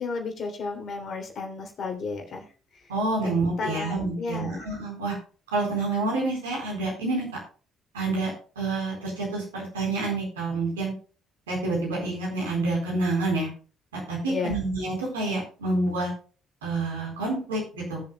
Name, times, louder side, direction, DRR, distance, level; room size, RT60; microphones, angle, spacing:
voice 1, 0.0-2.4 3.2-4.7 14.3-14.6, left 4 dB, 50° left, 3 dB, 3.0 m, -33 dB
voice 2, 2.9-5.1 5.5-7.3 7.9-8.3 8.6-10.9 11.5-13.5 13.9-16.1 16.6-18.0, right 2 dB, 85° right, -2 dB, 4.2 m, -28 dB
19.5 x 7.3 x 2.3 m, 0.38 s
hypercardioid pair, 50°, 0 cm